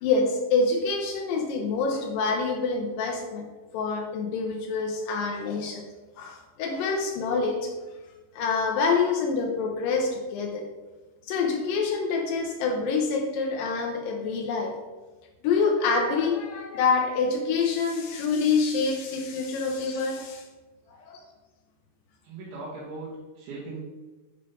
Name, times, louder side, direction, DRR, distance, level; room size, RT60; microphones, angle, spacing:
voice 1, 0.0-3.5 3.7-5.9 6.2-7.7 8.3-10.6 11.3-14.8 15.4-20.4 20.9-21.2, left 4 dB, 85° left, 2 dB, 2.0 m, -26 dB
voice 2, 22.2-23.8, right 3 dB, 90° right, -8 dB, 4.0 m, -39 dB
8.9 x 4.5 x 5.1 m, 1.2 s
omnidirectional pair, 5.1 m